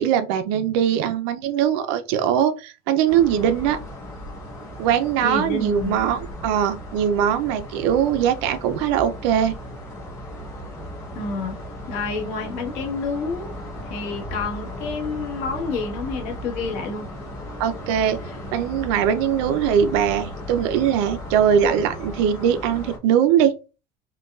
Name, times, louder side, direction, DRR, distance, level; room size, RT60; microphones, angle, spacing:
voice 1, 0.0-3.8 4.8-9.5 17.6-18.2 18.5-23.5, right 9 dB, 80° right, 0.5 m, -21 dB
sound 1, 3.1-23.0, left 1 dB, 20° left, 1.1 m, -36 dB
voice 2, 5.2-6.0 11.1-11.6 11.9-13.5 13.8-17.1, left 4 dB, 60° left, 1.3 m, -29 dB
5.3 x 2.3 x 2.3 m
cardioid pair, 180°, 14 cm